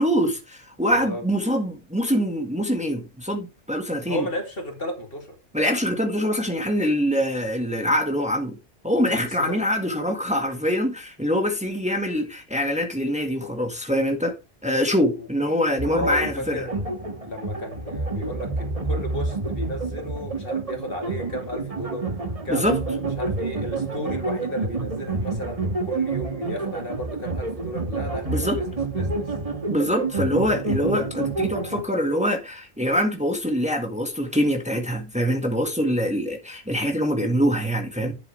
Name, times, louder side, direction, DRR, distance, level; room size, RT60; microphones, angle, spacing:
voice 1, 0.0-4.2 5.5-8.6 8.8-14.3 14.6-16.7 22.5-22.8 28.3-28.6 29.7-38.1, equal, 5° right, 1.7 m, -24 dB
voice 2, 4.0-5.4 9.1-9.6 15.2-15.3 15.8-16.8 17.2-22.1 22.4-29.3, equal, 65° left, 2.9 m, -33 dB
sound 1, 15.8-31.8, right 3 dB, 35° right, 1.5 m, -28 dB
11.5 x 7.1 x 3.4 m
omnidirectional pair, 1.0 m